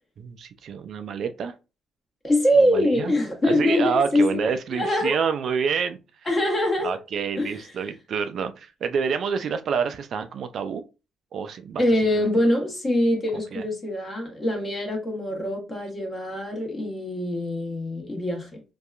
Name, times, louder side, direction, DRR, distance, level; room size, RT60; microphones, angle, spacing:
voice 1, 0.2-1.5 2.6-3.1 3.4-6.0 6.8-10.8 11.3-11.8 12.2-12.3 13.5-13.6, right 6 dB, 65° right, 0.3 m, -28 dB
voice 2, 2.2-4.4 4.7-5.2 6.3-6.9 7.3-7.6 11.8-18.6, left 1 dB, 30° left, 1.1 m, -23 dB
2.7 x 2.3 x 2.4 m
cardioid pair, 90°, 0 cm